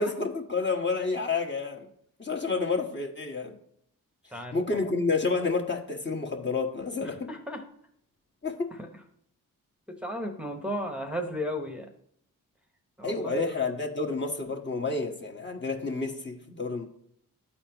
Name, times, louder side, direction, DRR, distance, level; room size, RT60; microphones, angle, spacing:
voice 1, 0.0-1.9 2.2-3.5 4.5-7.3 8.4-8.7 13.0-16.8, left 4 dB, 30° left, 2 dB, 1.4 m, -29 dB
voice 2, 4.3-4.8 7.0-7.6 8.7-8.9 9.9-11.9 13.0-13.6, equal, 5° right, 2 dB, 1.0 m, -35 dB
12.0 x 4.3 x 2.9 m, 0.68 s
supercardioid pair, 40°, 38 cm